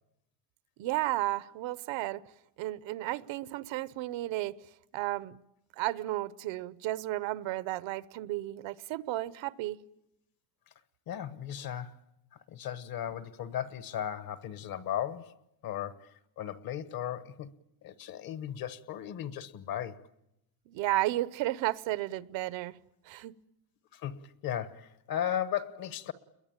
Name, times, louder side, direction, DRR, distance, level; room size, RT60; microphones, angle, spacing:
voice 1, 0.8-2.2 2.6-4.5 4.9-5.4 5.8-9.8 20.7-22.8 23.0-23.3, right 16 dB, 75° right, 0.9 m, -33 dB
voice 2, 11.1-12.0 12.3-17.5 17.8-20.1 23.9-26.1, left 10 dB, 50° left, 1.2 m, -36 dB
29.5 x 22.0 x 8.9 m
cardioid pair, 170°, 46 cm